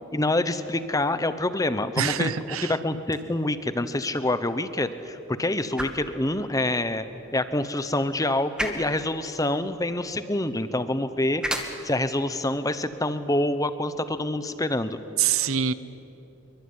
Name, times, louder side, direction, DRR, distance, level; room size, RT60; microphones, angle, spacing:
voice 1, 0.1-2.3 2.8-7.0 7.3-15.0, left 1 dB, 15° left, 12 dB, 1.0 m, -26 dB
voice 2, 2.0-2.8 15.2-15.7, right 8 dB, 70° right, 15 dB, 0.9 m, -25 dB
sound 1, 3.0-15.0, equal, 5° right, 1.8 m, -40 dB
26.0 x 23.5 x 9.7 m, 3.0 s
head